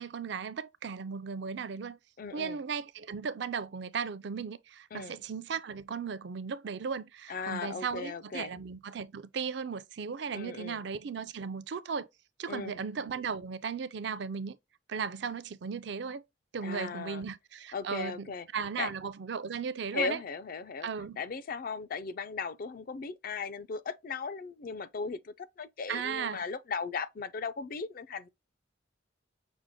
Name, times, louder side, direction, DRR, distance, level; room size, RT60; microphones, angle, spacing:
voice 1, 0.0-2.0 2.3-12.1 12.4-14.6 14.9-16.2 16.5-18.3 18.5-20.2 20.8-21.2 25.9-26.4, right 6 dB, 65° right, 0.4 m, -36 dB
voice 2, 2.2-2.6 4.9-5.2 7.3-8.5 10.3-10.8 12.5-12.8 16.6-17.2 17.7-18.5 18.8-18.9 19.9-20.9 21.2-28.3, left 5 dB, 50° left, 0.4 m, -37 dB
6.1 x 2.1 x 3.6 m
head